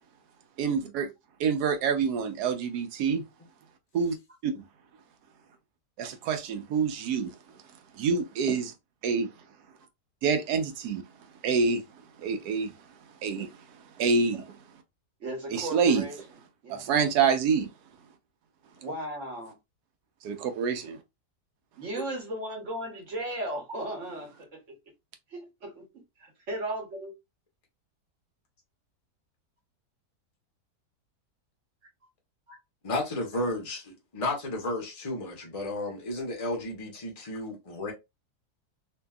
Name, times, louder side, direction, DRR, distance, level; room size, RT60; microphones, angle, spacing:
voice 1, 0.6-1.1 1.4-3.2 3.9-4.2 4.4-4.5 6.0-7.3 7.9-8.7 9.0-9.3 10.2-11.0 11.4-11.8 12.2-12.7 13.2-13.6 14.0-14.6 15.5-16.1 16.7-17.7 20.2-21.0, right 5 dB, 75° right, 1.1 m, -26 dB
voice 2, 15.2-16.2 16.6-16.8 18.8-19.5 21.8-24.7 25.3-25.8 26.2-27.1 32.5-32.6, right 1 dB, 50° right, 1.2 m, -36 dB
voice 3, 32.8-37.9, left 2 dB, 50° left, 0.4 m, -33 dB
2.7 x 2.6 x 2.3 m
omnidirectional pair, 1.7 m